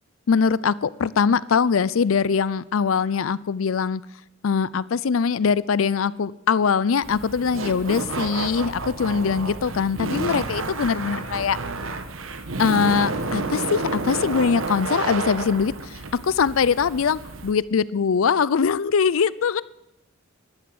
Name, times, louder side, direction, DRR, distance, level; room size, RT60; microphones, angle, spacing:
voice 1, 0.3-4.0 4.4-11.6 12.6-16.0 16.2-19.6, left 6 dB, 75° left, 20 dB, 0.5 m, -22 dB
Laughter, 7.0-17.5, right 3 dB, 75° right, 1.2 m, -30 dB
12.5 x 10.0 x 7.8 m, 0.85 s
head